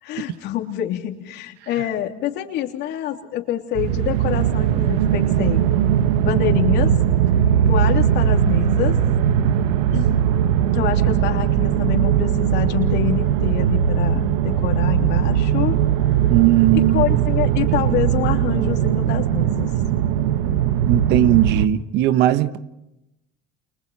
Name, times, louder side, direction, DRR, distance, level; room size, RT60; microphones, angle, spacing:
voice 1, 0.0-5.6 6.2-6.9 7.7-9.0 9.9-10.2 10.7-15.8 16.7-19.7, left 11 dB, 65° left, 4 dB, 3.1 m, -26 dB
sound 1, 3.8-21.7, right 9 dB, 90° right, 1.2 m, -19 dB
voice 2, 16.3-17.2 20.8-22.6, right 12 dB, 65° right, 12 dB, 1.3 m, -17 dB
30.0 x 29.0 x 4.3 m, 0.89 s
supercardioid pair, 95°, 19 cm